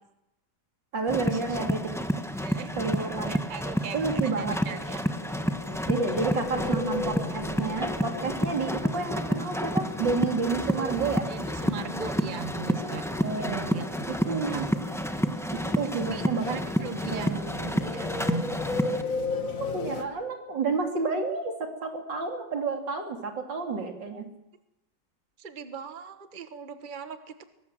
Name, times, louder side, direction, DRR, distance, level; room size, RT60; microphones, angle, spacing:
voice 1, 0.9-1.9 2.8-3.4 3.9-4.6 5.9-11.3 13.2-13.7 14.3-14.7 15.5-16.6 17.1-17.4 19.6-24.3, right 4 dB, 90° right, 3 dB, 3.6 m, -30 dB
sound 1, 1.1-19.0, equal, ahead, 0.9 m, -30 dB
voice 2, 2.4-5.1 6.1-6.2 11.3-13.1 13.3-14.7 15.9-17.3 17.6-18.5 25.4-27.4, right 5 dB, 30° right, 9 dB, 1.3 m, -39 dB
sound 2, 4.7-20.0, left 3 dB, 50° left, 2.2 m, -37 dB
23.0 x 18.5 x 7.6 m, 0.89 s
omnidirectional pair, 1.9 m